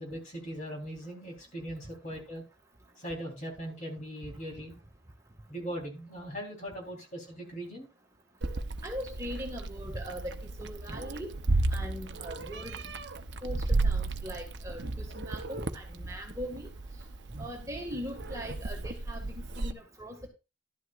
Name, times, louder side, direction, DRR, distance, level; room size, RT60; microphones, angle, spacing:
voice 1, 0.0-2.4 3.0-4.7 5.5-7.9, equal, 40° left, 0 dB, 3.9 m, -40 dB
Meow, 8.4-19.7, right 2 dB, 70° right, 0.8 m, -34 dB
voice 2, 8.8-11.4 11.7-12.8 13.4-16.7 17.4-20.3, equal, 15° right, 1 dB, 2.0 m, -40 dB
12.0 x 11.0 x 2.5 m, 0.29 s
head